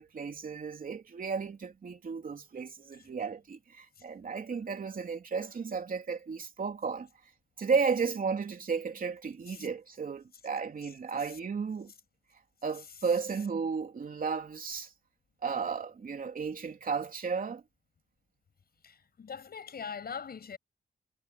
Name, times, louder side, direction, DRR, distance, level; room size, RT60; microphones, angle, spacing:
voice 1, 0.0-7.1 7.6-11.9 12.6-14.9 15.4-17.6, right 5 dB, 55° right, 3.2 m, -34 dB
voice 2, 18.8-20.6, left 6 dB, 65° left, 7.8 m, -42 dB
wide cardioid pair, 115°, 17 cm